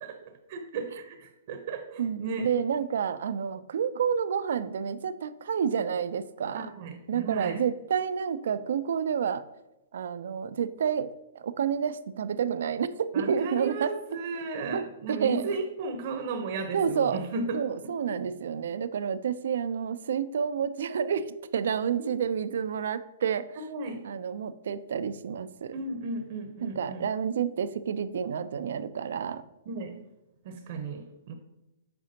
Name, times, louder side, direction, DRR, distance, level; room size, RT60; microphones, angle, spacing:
voice 1, 0.0-2.5 6.5-7.6 13.1-17.6 18.0-18.1 22.0-22.1 23.6-24.0 25.7-27.0 29.7-30.0 30.4-31.3, right 3 dB, 55° right, 6 dB, 0.8 m, -35 dB
voice 2, 2.0-6.7 7.1-9.4 9.9-13.9 14.7-15.5 16.7-17.2 17.5-23.6 24.0-25.7 26.6-29.4, right 7 dB, 70° right, 13 dB, 0.4 m, -29 dB
7.5 x 4.9 x 2.8 m, 0.95 s
hypercardioid pair, 120°, 0 cm